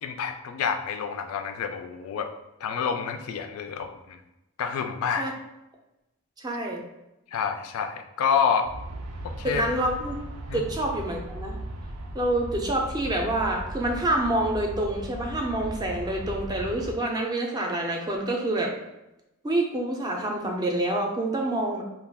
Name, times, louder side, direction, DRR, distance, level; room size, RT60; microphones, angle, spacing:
voice 1, 0.0-2.3 2.6-4.2 4.6-5.3 7.3-8.7 9.4-9.6 10.5-10.6, left 7 dB, 75° left, 7 dB, 0.3 m, -28 dB
voice 2, 6.4-6.8 9.4-10.2 10.5-11.5 12.1-18.7 19.4-21.8, right 1 dB, 20° right, 1 dB, 0.4 m, -27 dB
Aircraft, 8.6-16.9, right 1 dB, 85° right, 0.4 m, -37 dB
2.3 x 2.2 x 3.4 m, 0.94 s
head